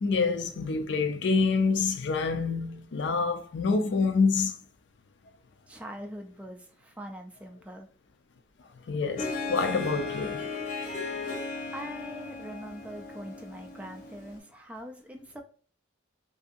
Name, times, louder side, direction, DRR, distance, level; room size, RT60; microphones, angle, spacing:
voice 1, 0.0-4.5 8.9-10.5, left 4 dB, 70° left, 0.4 m, -27 dB
voice 2, 5.7-7.9 11.5-15.4, equal, 5° right, 0.4 m, -43 dB
Harp, 9.2-14.4, left 3 dB, 45° left, 0.9 m, -36 dB
2.6 x 2.6 x 2.4 m
head